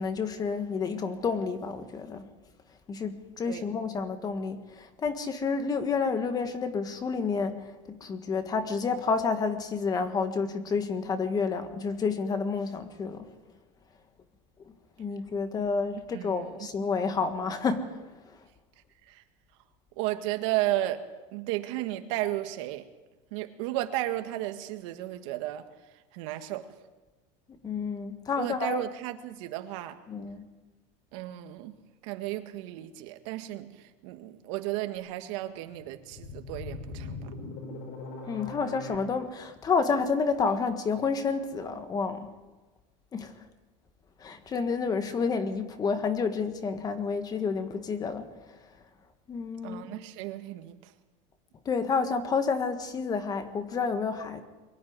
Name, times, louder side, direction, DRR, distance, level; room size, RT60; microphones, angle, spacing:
voice 1, 0.0-2.2 2.9-13.3 15.0-18.0 27.6-28.9 30.1-30.5 38.3-42.3 43.1-43.3 44.2-48.3 49.3-49.8 51.6-54.4, left 5 dB, 25° left, 9 dB, 1.6 m, -29 dB
voice 2, 16.1-16.6 19.1-19.2 20.0-22.9 23.3-25.7 26.1-26.7 28.4-30.0 31.1-31.7 32.0-37.3 49.6-50.9, right 15 dB, 65° right, 8 dB, 1.7 m, -34 dB
sound 1, 35.7-39.0, left 3 dB, 50° left, 5.6 m, -40 dB
23.0 x 12.0 x 9.6 m, 1.2 s
supercardioid pair, 150°, 17 cm